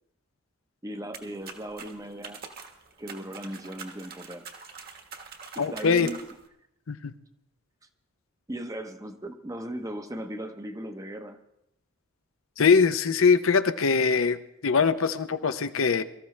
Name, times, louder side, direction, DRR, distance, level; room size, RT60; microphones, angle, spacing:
voice 1, 0.8-2.4 3.0-4.5 5.5-6.3 8.5-11.4, right 1 dB, 15° right, 7 dB, 0.8 m, -37 dB
sound 1, 1.1-6.5, right 5 dB, 45° right, 1.3 m, -45 dB
voice 2, 5.6-6.1 6.9-7.1 12.6-16.0, left 5 dB, 65° left, 11 dB, 0.6 m, -22 dB
23.0 x 13.5 x 3.2 m, 0.82 s
head